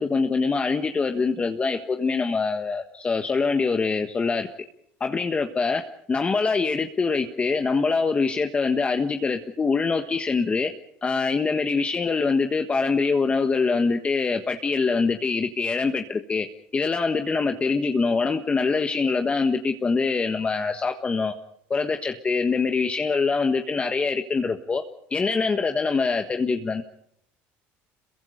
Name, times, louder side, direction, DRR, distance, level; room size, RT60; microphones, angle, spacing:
voice 1, 0.0-4.5 5.0-5.8 6.1-10.7 11.0-16.5 16.7-21.3 21.7-24.8 25.1-26.8, left 4 dB, 20° left, 5 dB, 1.5 m, -24 dB
27.5 x 22.5 x 5.2 m, 0.70 s
cardioid pair, 120°, 5 cm